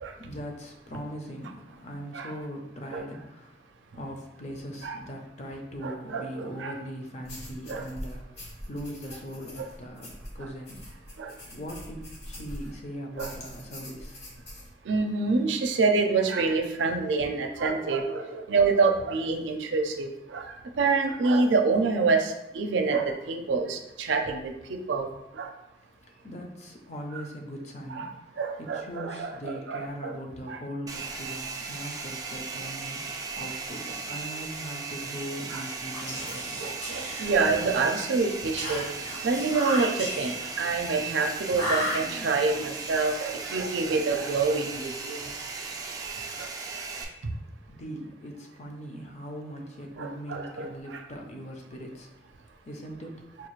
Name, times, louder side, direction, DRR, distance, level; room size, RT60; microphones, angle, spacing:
voice 1, 0.2-3.6 3.9-10.9 11.5-14.2 26.0-36.6 47.7-52.1 52.6-53.3, equal, 40° left, 2 dB, 0.6 m, -40 dB
voice 2, 5.8-6.7 7.7-7.9 9.6-9.7 11.2-11.3 13.2-13.3 14.9-25.5 27.9-28.1 28.4-30.2 30.5-30.6 35.5-35.6 36.6-38.9 39.2-45.2 46.4-46.5 50.0-51.0, right 4 dB, 85° right, 5 dB, 0.5 m, -27 dB
sound 1, 7.2-12.8 13.2-14.7, equal, 60° left, 1.1 m, -43 dB
Domestic sounds home sounds, 30.9-47.0, right 4 dB, 20° right, 0.3 m, -37 dB
Whispering, 35.9-37.8 38.6-40.6 41.5-42.5, equal, 85° left, 1.5 m, -34 dB
4.6 x 2.4 x 3.0 m, 0.91 s
head